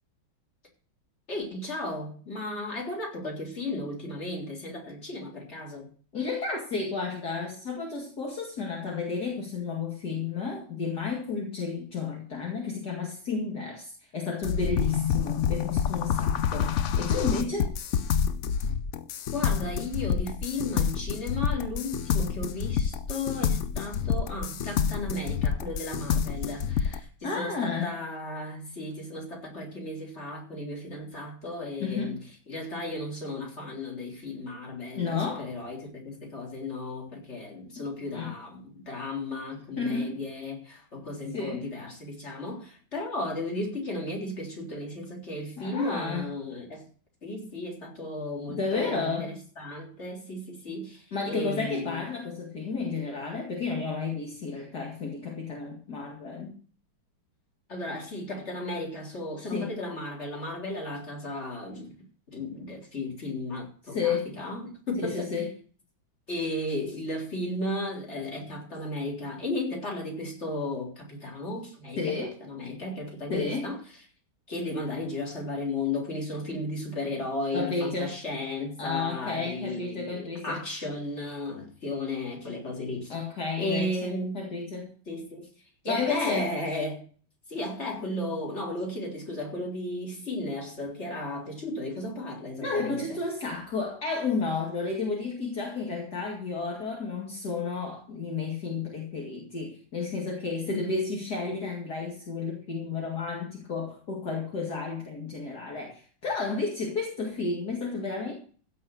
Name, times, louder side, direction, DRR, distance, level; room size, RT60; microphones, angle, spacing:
voice 1, 1.3-5.9 19.3-32.2 32.5-46.9 47.2-52.0 57.7-61.9 62.3-65.3 66.3-73.8 74.5-83.1 83.6-84.4 85.1-85.5 85.8-87.1 87.5-93.2 100.7-100.9, left 2 dB, 35° left, -2 dB, 4.0 m, -34 dB
voice 2, 6.1-17.7 27.2-27.9 31.8-32.2 34.9-35.5 37.8-38.4 39.8-40.1 41.3-41.7 45.6-46.3 48.5-49.3 51.1-56.6 59.5-59.7 63.9-64.3 65.0-65.5 72.0-72.3 73.3-73.7 77.5-78.2 78.8-80.6 83.1-84.9 85.9-86.5 92.6-108.3, left 4 dB, 55° left, -1 dB, 2.8 m, -32 dB
sound 1, 14.4-27.0, left 7 dB, 80° left, 0.6 m, -28 dB
15.5 x 5.7 x 7.8 m, 0.43 s
omnidirectional pair, 2.1 m